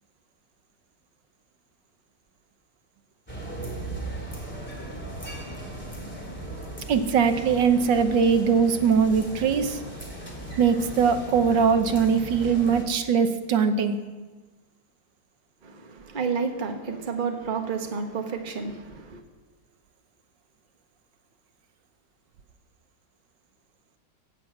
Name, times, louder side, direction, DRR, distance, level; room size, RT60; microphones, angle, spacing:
sound 1, 3.3-12.8, right 1 dB, 5° left, 2.7 m, -37 dB
voice 1, 6.9-9.8 10.6-14.0, right 6 dB, 80° right, 1.6 m, -21 dB
voice 2, 15.6-19.2, right 5 dB, 30° right, 1.3 m, -30 dB
14.5 x 7.6 x 8.5 m
omnidirectional pair, 2.0 m